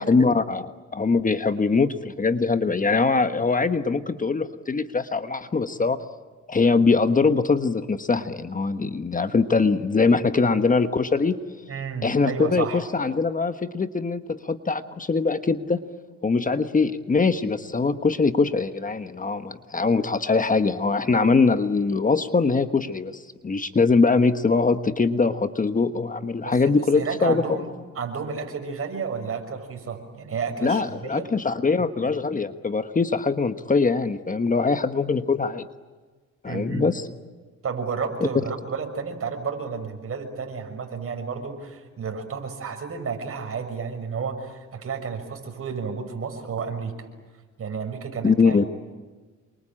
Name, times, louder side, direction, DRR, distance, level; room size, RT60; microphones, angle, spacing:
voice 1, 0.0-6.0 6.5-11.4 12.0-15.8 16.2-27.4 30.6-35.7 36.4-37.1 48.2-48.6, left 4 dB, 25° left, 10 dB, 1.3 m, -22 dB
voice 2, 11.7-12.8 26.4-26.6 26.9-27.7 27.9-31.3 36.4-36.9 37.6-47.1 47.6-48.8, right 5 dB, 50° right, 5 dB, 6.3 m, -31 dB
28.0 x 24.0 x 8.9 m, 1.4 s
cardioid pair, 90°, 30 cm